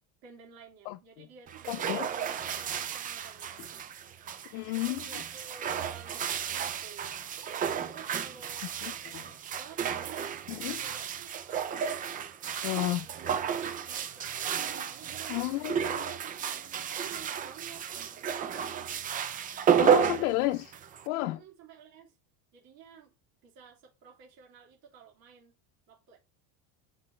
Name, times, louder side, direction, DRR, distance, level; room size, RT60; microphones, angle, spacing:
voice 1, 0.2-3.5 4.8-7.1 7.6-10.3 10.8-11.6 12.4-13.5 13.9-15.5 15.9-17.9 18.2-18.9 20.0-20.4 21.3-22.1 22.5-23.1 23.4-25.5 25.9-26.2, right 7 dB, 55° right, 2.5 m, -53 dB
voice 2, 0.9-1.3 1.7-2.1 4.5-5.2 8.8-9.2 10.5-10.8 12.6-13.0 15.3-16.1 19.8-20.7 21.1-21.4, left 18 dB, 80° left, 0.7 m, -32 dB
sound 1, 1.5-21.1, right 8 dB, 20° right, 0.3 m, -32 dB
7.7 x 5.4 x 3.2 m
supercardioid pair, 130°, 44 cm